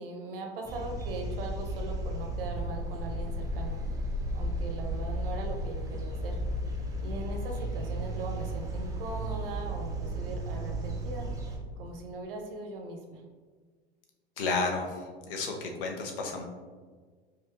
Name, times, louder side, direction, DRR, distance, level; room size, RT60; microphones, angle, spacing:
voice 1, 0.0-3.8 4.3-6.4 7.0-11.3 11.8-13.2, right 2 dB, 65° right, 3 dB, 0.7 m, -40 dB
sound 1, 0.6-11.6, right 1 dB, 10° right, 0.5 m, -34 dB
voice 2, 14.4-16.4, left 3 dB, 60° left, 2 dB, 0.7 m, -32 dB
4.8 x 2.6 x 2.3 m, 1.5 s
figure-of-eight pair, 85°, 31 cm